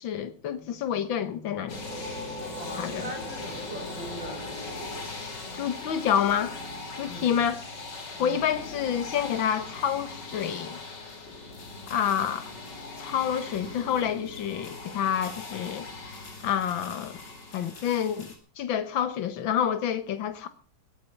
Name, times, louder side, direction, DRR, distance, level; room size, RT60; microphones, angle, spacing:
voice 1, 0.0-1.8 2.8-3.1 5.5-6.6 6.9-7.6 8.2-10.8 11.9-12.5 13.0-15.9 16.4-17.2 17.5-20.5, left 9 dB, 80° left, 1.8 m, -28 dB
sound 1, 1.6-6.1, equal, 20° right, 3.4 m, -43 dB
sound 2, 1.7-18.4, left 3 dB, 60° left, 3.1 m, -40 dB
voice 2, 2.6-5.1 7.0-7.4 8.1-8.4, right 1 dB, 70° right, 6.3 m, -41 dB
20.0 x 8.5 x 5.8 m
omnidirectional pair, 2.1 m